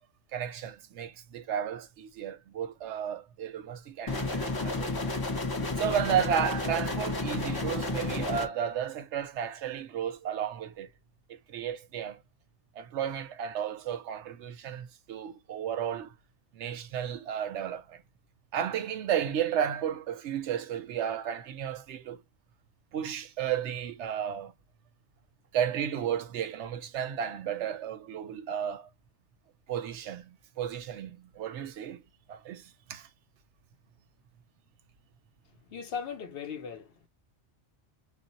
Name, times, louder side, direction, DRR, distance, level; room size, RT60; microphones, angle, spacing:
voice 1, 0.3-5.1 5.8-10.9 11.3-12.2 12.8-16.1 16.5-18.0 18.5-22.2 22.9-24.5 25.5-28.9 29.7-32.0 32.3-33.1, right 9 dB, 85° right, 0.9 m, -33 dB
sound 1, 4.1-8.5, left 2 dB, 30° left, 0.4 m, -31 dB
voice 2, 35.7-37.1, left 7 dB, 60° left, 0.8 m, -38 dB
2.4 x 2.1 x 3.8 m
omnidirectional pair, 1.2 m